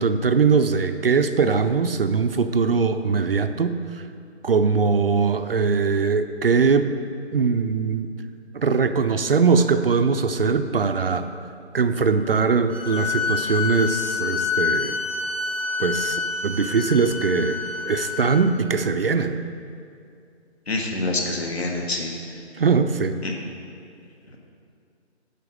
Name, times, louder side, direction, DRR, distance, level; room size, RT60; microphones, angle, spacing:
voice 1, 0.0-4.0 4.4-6.9 7.3-8.1 8.5-11.3 11.7-15.0 15.8-19.4 22.6-23.2, right 5 dB, 60° right, 9 dB, 0.5 m, -21 dB
sound 1, 12.7-18.4, left 5 dB, 5° left, 1.1 m, -27 dB
voice 2, 20.7-22.1 23.2-23.3, left 2 dB, 65° left, 1 dB, 1.6 m, -26 dB
10.0 x 4.4 x 6.5 m, 2.4 s
figure-of-eight pair, 170°, 34 cm